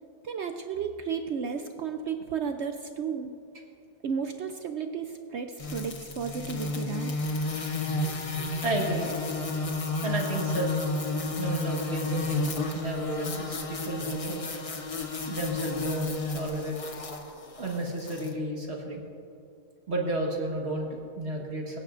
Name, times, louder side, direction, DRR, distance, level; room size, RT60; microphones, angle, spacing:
voice 1, 0.2-3.4 4.0-7.2, right 6 dB, 75° right, 6 dB, 0.6 m, -33 dB
sound 1, 5.6-18.3, left 3 dB, 60° left, 0.3 m, -32 dB
voice 2, 7.8-9.1 10.0-10.8 11.4-14.4 15.2-16.7 17.6-19.0 19.9-21.8, right 1 dB, 40° right, 0 dB, 1.6 m, -32 dB
23.5 x 9.1 x 2.5 m, 2.4 s
omnidirectional pair, 1.7 m